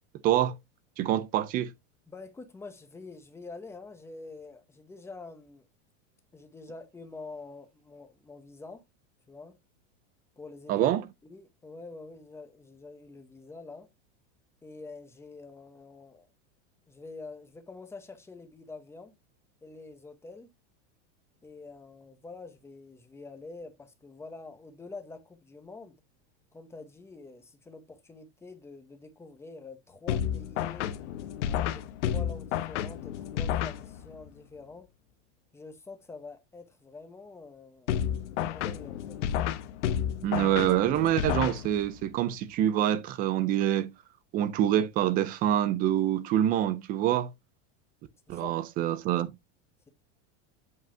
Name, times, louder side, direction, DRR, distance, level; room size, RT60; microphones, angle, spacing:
voice 1, 0.2-0.5 1.0-1.7 10.7-11.0 40.2-43.9 44.3-47.3 48.3-49.3, right 11 dB, 25° right, 0.4 m, -26 dB
voice 2, 2.1-5.7 6.3-8.8 9.3-9.5 10.4-10.9 11.2-13.9 14.6-16.3 16.9-19.2 19.6-20.5 21.4-25.9 26.5-30.9 31.4-34.9 35.5-39.2 48.3-48.5, left 3 dB, 5° left, 1.0 m, -46 dB
sound 1, 30.1-34.3 37.9-42.1, left 10 dB, 75° left, 1.0 m, -31 dB
7.7 x 5.5 x 2.7 m
supercardioid pair, 155°, 36 cm